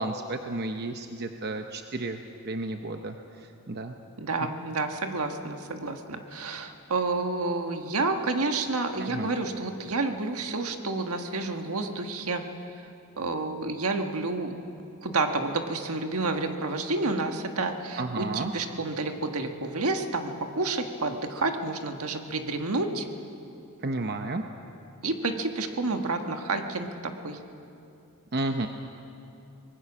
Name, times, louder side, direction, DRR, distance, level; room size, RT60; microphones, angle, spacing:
voice 1, 0.0-4.0 9.0-9.3 18.0-18.5 23.8-24.4 28.3-28.7, right 2 dB, 45° right, 5 dB, 0.8 m, -32 dB
voice 2, 4.2-12.4 12.8-12.9 13.2-14.5 15.0-23.1 25.0-26.9 27.2-27.4, right 3 dB, 80° right, 5 dB, 1.5 m, -29 dB
24.5 x 20.0 x 6.2 m, 2.7 s
head